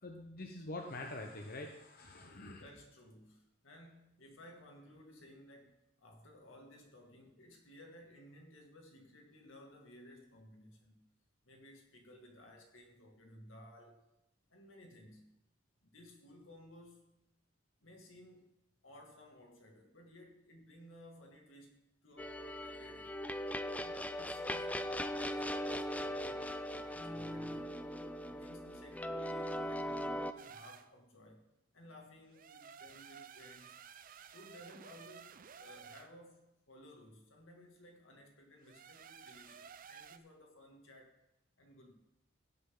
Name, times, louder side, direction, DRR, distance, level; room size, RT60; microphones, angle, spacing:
voice 1, 0.0-2.6, left 2 dB, 50° left, 2 dB, 1.1 m, -45 dB
voice 2, 2.4-11.1 11.4-14.0 14.5-15.3 15.8-17.1 17.8-18.5 18.8-21.8 22.0-23.2 23.7-27.8 28.2-31.5 31.7-33.8 34.3-41.2 41.6-41.9, left 1 dB, 80° left, 2 dB, 2.4 m, -57 dB
sound 1, 22.2-30.3, equal, 5° left, 0.5 m, -39 dB
sound 2, 30.4-30.9 32.3-36.1 38.6-40.2, right 7 dB, 45° right, 0.5 m, -54 dB
17.0 x 7.9 x 3.9 m, 0.88 s
head